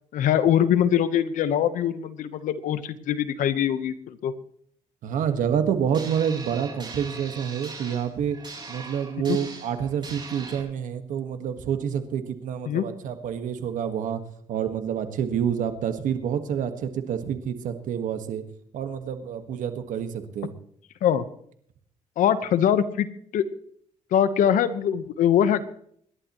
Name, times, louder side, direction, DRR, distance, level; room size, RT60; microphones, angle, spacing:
voice 1, 0.1-4.3 9.3-9.4 12.7-12.8 21.0-21.2 22.2-23.1 23.3-23.4 24.1-25.6, left 9 dB, 80° left, 12 dB, 1.1 m, -22 dB
voice 2, 5.0-8.4 8.7-14.2 14.5-18.4 18.7-20.5, right 8 dB, 80° right, 8 dB, 1.7 m, -28 dB
sound 1, 5.9-10.6, right 4 dB, 35° right, 5.4 m, -41 dB
26.5 x 11.5 x 3.1 m, 0.65 s
cardioid pair, 90°, 13 cm